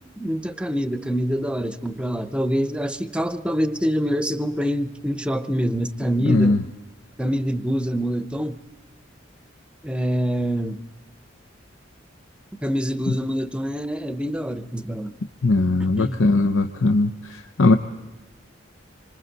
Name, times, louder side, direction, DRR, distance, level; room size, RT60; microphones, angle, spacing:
voice 1, 0.2-6.6 7.2-8.6 9.8-10.8 12.6-15.1 15.8-16.2, equal, 5° right, 10 dB, 0.7 m, -25 dB
voice 2, 6.2-6.6 15.4-17.1 17.6-17.8, left 2 dB, 90° left, 5 dB, 0.8 m, -18 dB
26.5 x 24.5 x 4.1 m, 1.2 s
head